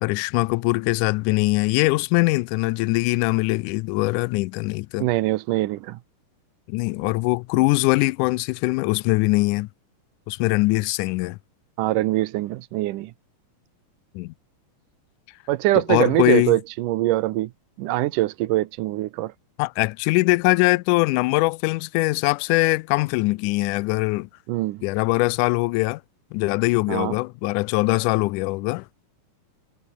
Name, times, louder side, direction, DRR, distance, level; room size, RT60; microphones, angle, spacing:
voice 1, 0.0-5.1 6.7-9.7 10.3-11.4 14.2-14.3 15.9-16.6 19.6-24.3 24.8-26.0 26.3-28.8, left 23 dB, 80° left, 1.9 m, -22 dB
voice 2, 5.0-6.0 11.8-13.1 15.5-17.5 17.8-19.3 24.5-24.8 26.9-27.2, right 16 dB, 75° right, 2.3 m, -23 dB
omnidirectional pair, 3.9 m